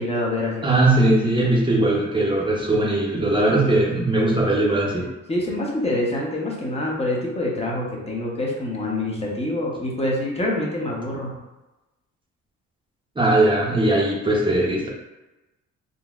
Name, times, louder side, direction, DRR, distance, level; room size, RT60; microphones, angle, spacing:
voice 1, 0.0-0.7 5.3-11.4, left 1 dB, 20° left, -3 dB, 0.8 m, -26 dB
voice 2, 0.6-5.1 13.2-14.9, right 2 dB, 15° right, -3 dB, 0.7 m, -19 dB
3.9 x 2.1 x 2.4 m, 1.1 s
cardioid pair, 90°, 30 cm